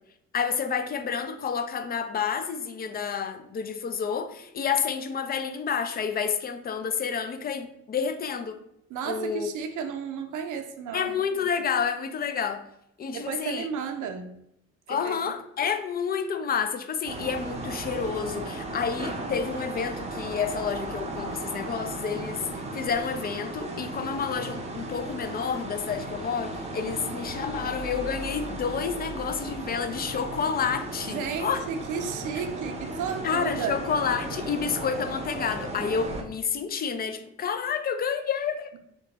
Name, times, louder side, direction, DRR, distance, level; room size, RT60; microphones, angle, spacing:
voice 1, 0.3-8.6 9.1-9.5 10.9-12.7 13.0-13.7 14.9-22.5 22.7-31.6 33.2-38.8, left 6 dB, 30° left, 0.4 m, -29 dB
voice 2, 8.9-11.1 13.1-14.3 14.9-15.1 27.0-27.1 31.0-33.8, right 6 dB, 80° right, 0.6 m, -33 dB
sound 1, 17.0-36.2, right 2 dB, 20° right, 0.6 m, -36 dB
2.9 x 2.2 x 3.9 m
cardioid pair, 90°, 30 cm